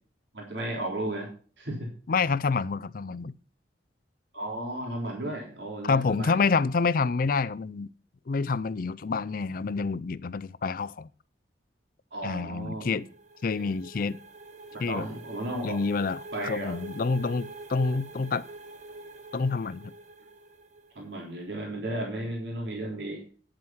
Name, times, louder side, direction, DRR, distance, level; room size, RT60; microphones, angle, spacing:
voice 1, 0.3-1.3 1.6-1.9 4.3-6.4 12.1-13.0 13.5-13.7 14.9-15.8 16.3-16.7 21.0-23.2, right 1 dB, 75° right, 3.5 m, -34 dB
voice 2, 2.1-3.3 5.8-7.9 8.3-11.1 12.2-13.1 13.4-14.2 14.8-15.1 15.6-18.4 19.3-19.9, left 4 dB, 50° left, 0.4 m, -28 dB
sound 1, 12.6-21.2, right 2 dB, 40° right, 1.2 m, -45 dB
9.9 x 7.7 x 5.6 m
head